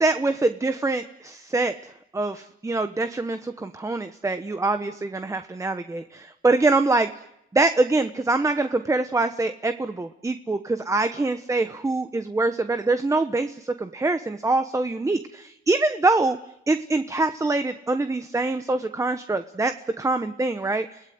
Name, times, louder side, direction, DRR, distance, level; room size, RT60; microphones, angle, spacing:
voice 1, 0.0-1.7 2.1-7.1 7.5-16.4 16.7-20.9, right 2 dB, 15° right, 9 dB, 1.1 m, -24 dB
30.0 x 17.5 x 9.4 m, 0.83 s
cardioid pair, 90°, 20 cm